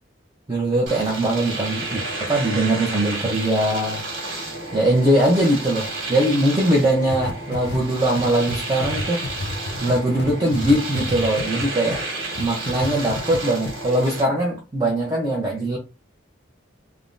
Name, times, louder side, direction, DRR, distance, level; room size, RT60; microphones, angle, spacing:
voice 1, 0.5-4.0 4.7-9.2 9.8-12.0 12.4-15.8, right 1 dB, 20° right, 0.5 m, -21 dB
Domestic sounds home sounds, 0.9-14.3, right 2 dB, 70° right, 1.4 m, -31 dB
sound 1, 7.1-12.0 12.3-13.4 13.6-13.7, left 2 dB, 55° left, 0.4 m, -30 dB
3.3 x 2.0 x 2.5 m
head